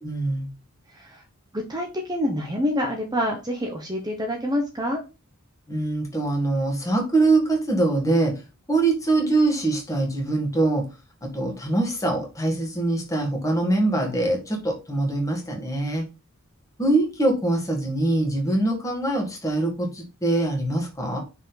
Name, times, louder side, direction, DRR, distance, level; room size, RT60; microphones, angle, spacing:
voice 1, 0.0-0.5 5.7-8.4 8.7-10.9 11.2-16.0 16.8-21.2, right 2 dB, 15° left, 1 dB, 1.8 m, -23 dB
voice 2, 0.9-1.2 1.5-5.0, left 1 dB, 20° right, 2 dB, 0.9 m, -27 dB
6.0 x 4.6 x 4.0 m, 0.29 s
head